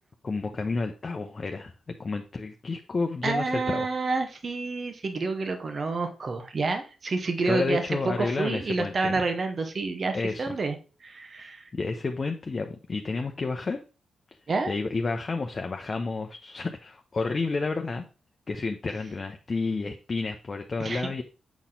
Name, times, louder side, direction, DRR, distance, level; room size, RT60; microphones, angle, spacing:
voice 1, 0.2-1.7 2.0-3.9 7.5-9.2 10.1-10.6 11.7-13.8 14.7-18.0 18.5-21.2, left 3 dB, 45° left, 4 dB, 0.7 m, -30 dB
voice 2, 3.2-10.8 11.0-11.7 14.5-14.7 20.8-21.1, right 3 dB, 55° right, 6 dB, 1.2 m, -29 dB
7.1 x 4.1 x 3.7 m, 0.34 s
hypercardioid pair, 40°, 0 cm